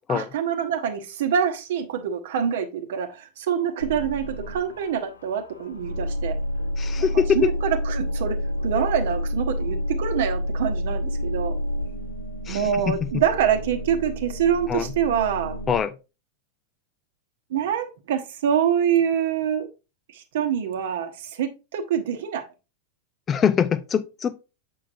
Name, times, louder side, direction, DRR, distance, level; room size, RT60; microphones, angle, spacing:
voice 1, 0.1-6.4 7.0-11.5 12.5-15.6 17.5-19.7 20.1-22.5, right 8 dB, 55° right, 1.0 m, -25 dB
sound 1, 3.8-15.8, equal, 75° left, 0.6 m, -29 dB
voice 2, 6.8-7.5 12.5-13.2 14.7-14.9 15.7-15.9 23.3-24.4, left 7 dB, 25° left, 0.4 m, -23 dB
7.2 x 5.7 x 2.6 m
figure-of-eight pair, 90°, 0 cm